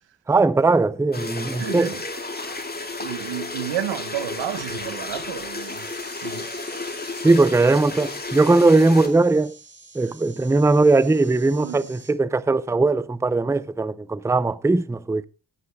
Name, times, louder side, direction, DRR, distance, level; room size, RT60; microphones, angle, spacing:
voice 1, 0.3-2.0 7.2-9.6 9.9-15.2, right 3 dB, 5° right, 0.5 m, -19 dB
sound 1, 1.1-9.1, left 2 dB, 20° left, 2.3 m, -32 dB
voice 2, 1.6-2.0 3.0-6.5 11.6-11.9, right 11 dB, 85° right, 1.3 m, -31 dB
sound 2, 5.6-12.1, right 3 dB, 25° right, 3.9 m, -48 dB
16.5 x 11.5 x 2.3 m
cardioid pair, 85°, 43 cm